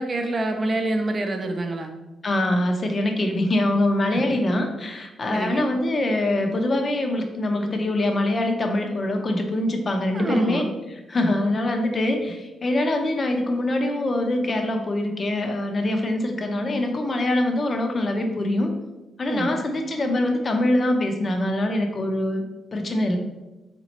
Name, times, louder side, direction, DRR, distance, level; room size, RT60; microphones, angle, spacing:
voice 1, 0.0-1.9 4.1-4.4 5.3-5.7 10.1-10.6 19.3-19.5, right 2 dB, 35° right, 4 dB, 0.7 m, -26 dB
voice 2, 2.2-10.6 11.1-18.7 19.2-22.4 22.7-23.2, left 1 dB, 35° left, 4 dB, 0.7 m, -24 dB
4.0 x 3.0 x 4.1 m, 1.0 s
cardioid pair, 90°, 0 cm